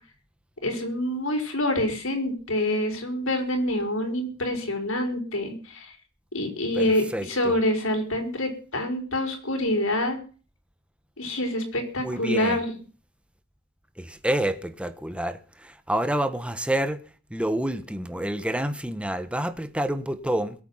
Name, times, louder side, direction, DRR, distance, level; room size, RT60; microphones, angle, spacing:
voice 1, 0.6-5.9 6.3-10.2 11.2-12.7, left 1 dB, 90° left, 5.1 m, -26 dB
voice 2, 7.1-7.5 12.0-12.6 14.0-17.0 17.3-20.5, right 1 dB, 5° right, 1.3 m, -28 dB
22.5 x 8.5 x 5.7 m
head